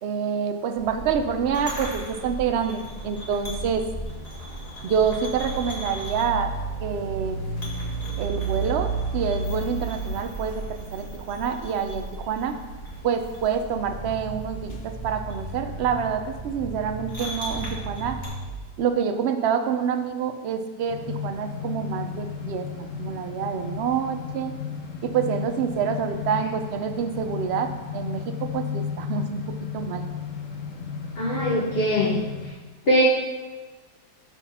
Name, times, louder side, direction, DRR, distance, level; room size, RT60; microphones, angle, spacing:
voice 1, 0.0-3.9 4.8-6.5 6.8-7.4 8.2-12.6 13.0-18.2 18.8-22.7 23.0-24.5 25.0-30.0, right 7 dB, 60° right, 6 dB, 0.7 m, -27 dB
sound 1, 0.8-18.3, right 2 dB, 25° left, 1.9 m, -34 dB
Growling, 13.7-18.6, right 3 dB, 15° right, 1.3 m, -37 dB
sound 2, 20.9-32.5, left 7 dB, 60° left, 1.1 m, -34 dB
voice 2, 31.2-32.2 32.9-33.0, equal, 40° left, -6 dB, 1.3 m, -21 dB
7.3 x 4.2 x 5.7 m, 1.3 s
omnidirectional pair, 1.6 m